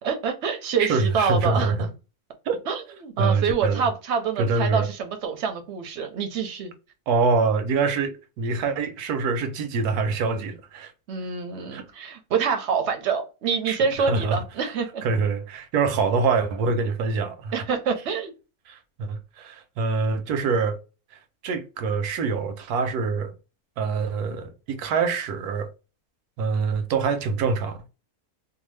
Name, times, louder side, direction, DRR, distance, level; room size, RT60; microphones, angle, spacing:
voice 1, 0.0-1.9 2.7-6.7 11.1-15.0 17.5-18.3, right 6 dB, 60° right, 0.8 m, -26 dB
voice 2, 0.8-1.9 2.5-2.6 3.2-3.9 4.4-4.9 7.1-10.9 11.7-11.9 13.7-13.8 14.1-14.4 15.0-17.5 18.7-20.8 21.4-23.3 23.8-25.7 26.4-27.8, right 4 dB, 85° right, 1.1 m, -25 dB
2.7 x 2.3 x 3.1 m
omnidirectional pair, 1.6 m